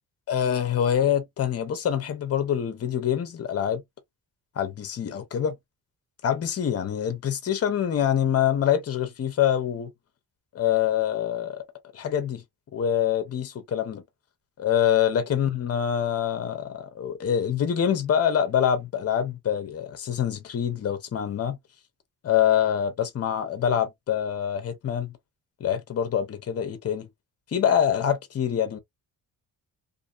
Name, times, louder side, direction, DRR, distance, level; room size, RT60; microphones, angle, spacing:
voice 1, 0.3-3.8 4.6-5.5 6.2-9.9 10.5-11.6 11.9-12.4 12.7-14.0 14.6-21.6 22.2-25.1 25.6-27.1 27.5-28.8, left 9 dB, 40° left, 0.7 m, -25 dB
2.7 x 2.6 x 2.4 m
cardioid pair, 145°, 38 cm